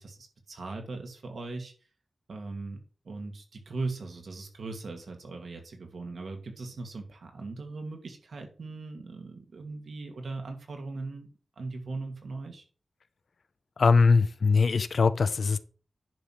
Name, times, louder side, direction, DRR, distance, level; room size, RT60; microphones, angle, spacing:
voice 1, 0.0-1.7 2.3-12.6, right 3 dB, 75° right, 2.3 m, -39 dB
voice 2, 13.8-15.6, left 4 dB, 70° left, 0.6 m, -22 dB
10.5 x 5.8 x 4.8 m
wide cardioid pair, 95°, 0 cm